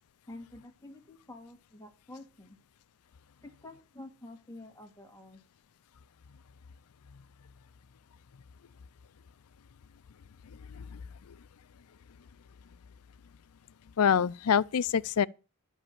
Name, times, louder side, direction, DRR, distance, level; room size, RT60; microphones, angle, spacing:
voice 1, 0.3-2.6 3.4-5.4, left 2 dB, 15° left, 2.6 m, -49 dB
voice 2, 10.7-11.0 11.3-11.4 14.0-15.3, left 7 dB, 80° left, 0.5 m, -26 dB
11.5 x 5.5 x 8.5 m
head